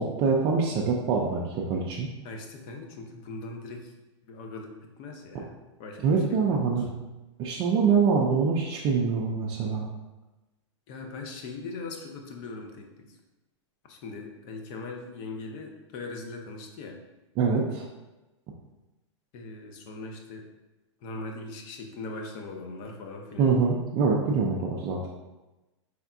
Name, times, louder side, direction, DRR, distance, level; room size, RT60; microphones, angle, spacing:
voice 1, 0.0-2.1 6.0-6.9 7.4-9.9 17.4-17.9 23.4-25.1, right 5 dB, 30° right, -3 dB, 0.4 m, -25 dB
voice 2, 2.2-3.9 4.2-6.0 6.3-6.8 10.9-13.2 13.9-17.0 19.3-20.4 21.0-23.6, left 3 dB, 40° left, 2 dB, 0.7 m, -40 dB
4.3 x 3.4 x 2.5 m, 1.1 s
hypercardioid pair, 135°, 16 cm